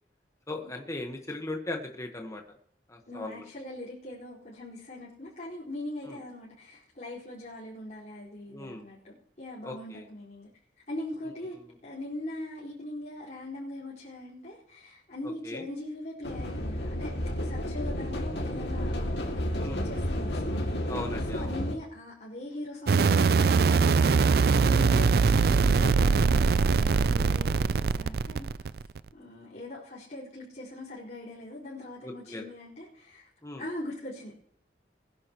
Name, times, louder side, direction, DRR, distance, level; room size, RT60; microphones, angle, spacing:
voice 1, 0.5-2.4 2.9-3.5 6.0-6.2 8.5-8.9 9.6-10.1 15.4-15.6 19.6-19.8 20.9-21.5 32.0-32.4 33.4-33.6, left 2 dB, 20° left, 3 dB, 1.4 m, -38 dB
voice 2, 3.1-10.5 10.9-17.1 17.4-20.8 21.3-28.7 29.1-33.3 33.6-34.4, left 1 dB, 45° left, -9 dB, 4.8 m, -41 dB
sound 1, 16.2-21.7, equal, 75° left, 2.4 m, -31 dB
sound 2, 22.9-29.0, right 4 dB, 60° right, 0.4 m, -22 dB
20.5 x 11.0 x 3.1 m, 0.63 s
head